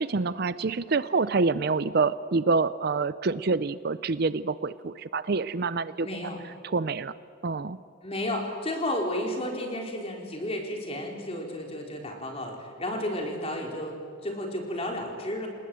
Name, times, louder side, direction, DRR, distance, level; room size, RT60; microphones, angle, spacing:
voice 1, 0.0-6.1 6.6-7.1 7.4-7.8, right 4 dB, 50° right, 15 dB, 0.5 m, -27 dB
voice 2, 6.0-6.4 8.0-15.5, left 1 dB, 30° left, 1 dB, 4.1 m, -32 dB
28.5 x 19.0 x 7.7 m, 2.4 s
head